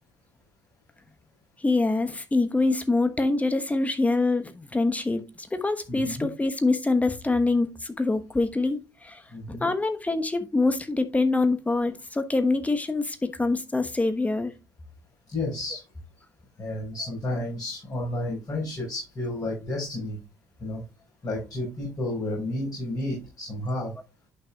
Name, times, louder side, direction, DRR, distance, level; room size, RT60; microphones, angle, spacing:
voice 1, 1.6-9.2 9.5-14.5, left 3 dB, 15° left, 1.2 m, -25 dB
voice 2, 5.9-6.3 9.3-9.7 15.3-15.8 16.6-20.2 20.6-20.8 21.2-23.9, left 1 dB, 40° left, 5.3 m, -31 dB
11.0 x 6.0 x 2.4 m
figure-of-eight pair, 45°, 9 cm